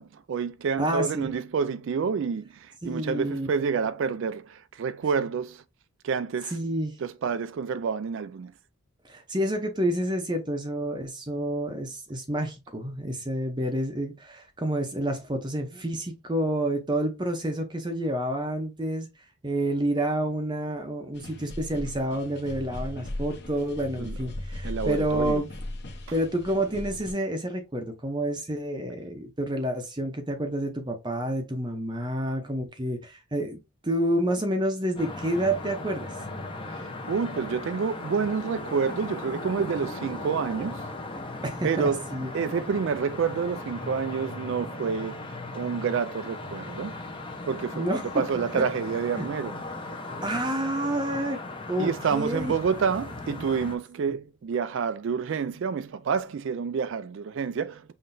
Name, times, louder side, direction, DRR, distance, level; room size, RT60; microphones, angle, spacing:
voice 1, 0.0-5.6 6.0-6.5 7.0-8.5 24.0-24.1 24.6-25.4 37.1-40.9 41.6-42.0 42.3-45.3 45.5-47.0 47.5-49.6 51.8-57.9, right 6 dB, 55° right, 0.3 m, -28 dB
voice 2, 0.8-1.3 2.8-3.5 6.5-7.0 9.0-19.1 19.4-25.5 26.1-36.2 41.4-42.3 47.7-48.2 49.2-49.3 50.2-51.4 51.7-52.5, right 1 dB, 20° right, 0.7 m, -29 dB
sound 1, 21.1-27.1, left 1 dB, 50° left, 1.1 m, -37 dB
sound 2, 35.0-53.8, left 2 dB, 25° left, 0.8 m, -37 dB
5.7 x 3.2 x 2.6 m
head